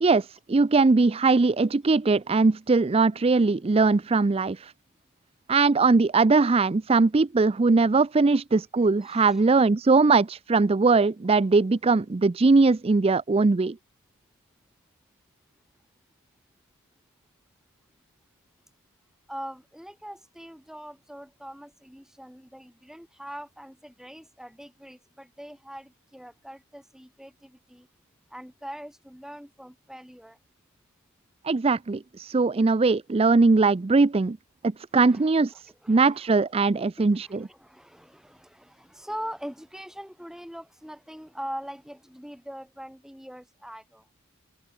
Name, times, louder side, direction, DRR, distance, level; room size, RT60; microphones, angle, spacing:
voice 1, 0.0-4.7 5.5-13.7 31.4-34.4 34.9-35.5 35.9-37.4, right 3 dB, 25° right, 0.4 m, -21 dB
voice 2, 9.0-9.4 19.3-27.9 28.3-30.4 34.9-36.3 36.6-44.0, equal, ahead, 6.8 m, -42 dB
open air
head